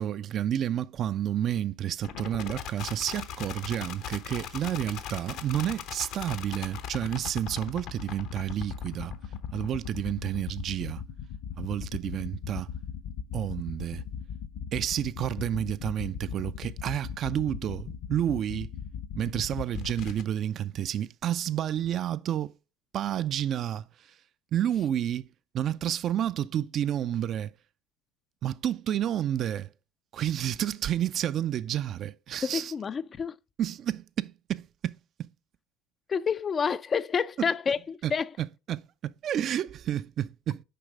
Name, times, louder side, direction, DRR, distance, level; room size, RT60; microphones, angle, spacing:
voice 1, 0.0-9.1 9.5-11.0 11.6-12.7 13.3-14.0 14.7-18.7 19.2-22.5 22.9-23.9 24.5-25.3 25.5-27.5 28.4-29.7 30.1-32.7 33.6-35.3 37.4-37.5 38.0-38.1 38.4-40.6, right 11 dB, 45° right, 0.4 m, -30 dB
sound 1, 2.0-20.2, left 8 dB, 55° left, 0.8 m, -39 dB
voice 2, 32.4-33.4 36.1-38.3, left 6 dB, 30° left, 0.4 m, -29 dB
6.7 x 5.1 x 4.9 m
hypercardioid pair, 70°, 0 cm